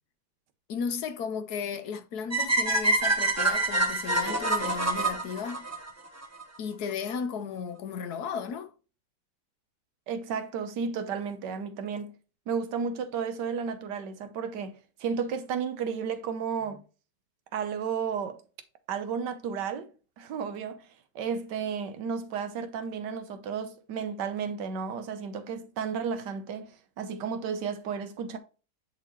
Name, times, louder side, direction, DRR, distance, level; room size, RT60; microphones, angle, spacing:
voice 1, 0.7-5.7 6.6-8.7, left 6 dB, 65° left, 1.3 m, -34 dB
sound 1, 2.3-6.4, right 2 dB, 15° right, 0.6 m, -26 dB
voice 2, 10.1-12.1 12.5-16.8 17.5-18.4 18.9-19.9 20.2-20.9 21.1-28.4, right 6 dB, 80° right, 1.5 m, -33 dB
10.0 x 4.2 x 3.0 m
omnidirectional pair, 1.9 m